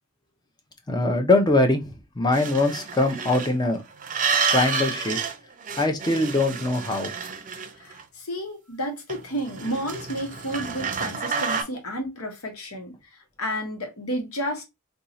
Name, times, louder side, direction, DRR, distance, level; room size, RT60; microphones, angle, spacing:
voice 1, 0.9-3.8 4.5-5.2 5.8-7.1, left 2 dB, 20° left, 0.6 m, -22 dB
sound 1, 2.3-3.5 4.0-5.4 5.6-8.0 9.1-11.6, right 5 dB, 35° right, 0.5 m, -29 dB
voice 2, 7.8-14.6, equal, 75° left, 1.2 m, -31 dB
2.7 x 2.3 x 4.0 m
head